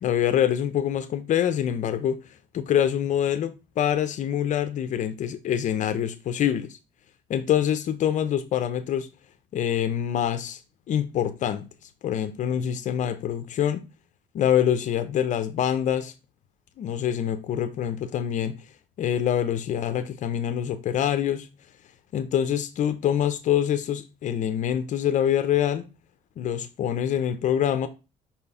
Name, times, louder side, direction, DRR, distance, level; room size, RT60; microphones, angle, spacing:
voice 1, 0.0-2.2 2.5-6.8 7.3-9.1 9.5-10.6 10.9-11.7 12.0-13.8 14.3-16.1 16.8-18.6 19.0-21.5 22.1-25.9 26.4-27.9, left 10 dB, 55° left, 0.6 m, -25 dB
5.6 x 4.5 x 5.5 m
cardioid pair, 145°, 16 cm